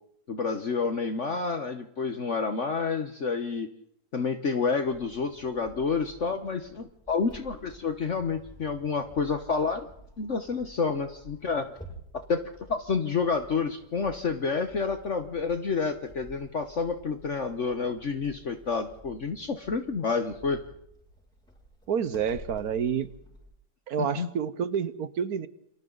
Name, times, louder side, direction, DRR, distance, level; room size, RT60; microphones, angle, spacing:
voice 1, 0.3-3.7 4.1-9.9 10.2-11.7 12.1-12.4 12.7-20.6 24.0-24.3, left 5 dB, 50° left, 7 dB, 1.4 m, -29 dB
sound 1, 4.8-23.5, right 1 dB, 5° left, 5.8 m, -52 dB
voice 2, 21.9-23.1 23.9-25.5, right 7 dB, 65° right, 14 dB, 1.5 m, -29 dB
29.0 x 26.0 x 4.0 m, 0.73 s
omnidirectional pair, 1.8 m